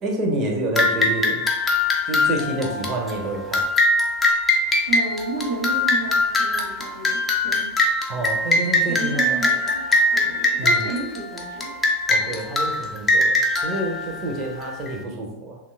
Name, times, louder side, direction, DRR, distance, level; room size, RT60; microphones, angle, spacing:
voice 1, 0.0-1.4 2.1-3.7 8.1-9.4 10.6-10.8 12.1-15.6, right 1 dB, 30° right, 1 dB, 0.6 m, -28 dB
sound 1, 0.8-14.9, left 2 dB, 15° left, 0.4 m, -22 dB
voice 2, 4.9-7.7 8.8-11.7, right 3 dB, 85° right, -6 dB, 1.0 m, -32 dB
2.9 x 2.2 x 2.3 m, 0.92 s
figure-of-eight pair, 90°, 0 cm